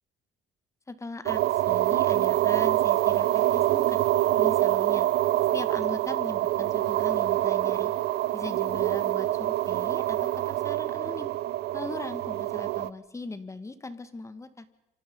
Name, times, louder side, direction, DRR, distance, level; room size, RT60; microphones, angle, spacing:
voice 1, 0.9-4.0 4.4-5.1 5.5-7.9 8.3-11.3 11.7-14.7, left 3 dB, 15° left, 12 dB, 2.1 m, -40 dB
sound 1, 1.3-12.9, right 14 dB, 75° right, 1.0 m, -25 dB
28.0 x 25.5 x 5.5 m, 0.90 s
cardioid pair, 110°, 17 cm